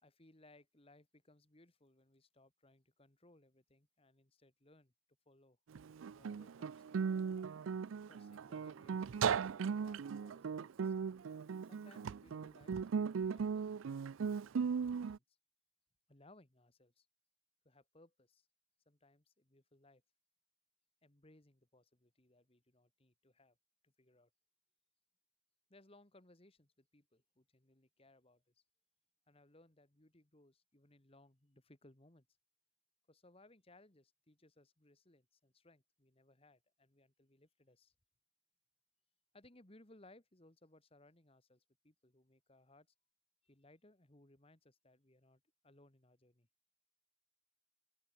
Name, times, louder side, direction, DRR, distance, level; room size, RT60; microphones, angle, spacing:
voice 1, 0.0-4.9 5.3-5.6 6.1-7.3 8.1-11.0 11.7-14.6 14.9-15.4 16.1-17.1 17.6-18.5 18.9-20.0 21.0-23.6 23.8-24.3 25.7-28.5 29.3-32.3 33.1-37.9 39.3-42.9 43.4-46.5, left 2 dB, 30° left, 1.9 m, -66 dB
Guitar, 5.8-15.2, right 6 dB, 75° right, 0.4 m, -38 dB
head